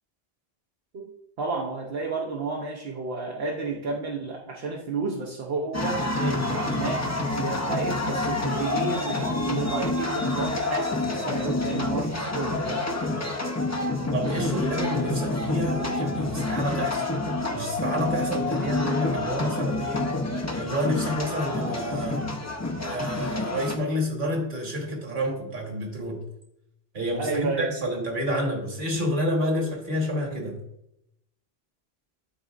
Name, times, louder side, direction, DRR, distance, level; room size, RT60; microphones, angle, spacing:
voice 1, 1.4-6.0 6.5-7.0 7.3-13.0 27.2-27.7, right 4 dB, 70° right, -1 dB, 1.0 m, -31 dB
sound 1, 5.7-23.8, left 2 dB, 20° left, 0.5 m, -28 dB
voice 2, 6.2-6.5 14.1-17.1 17.5-20.2 20.6-22.3 22.8-26.2 26.9-30.6, equal, 55° right, 1 dB, 1.6 m, -29 dB
11.5 x 4.1 x 2.4 m, 0.82 s
omnidirectional pair, 1.1 m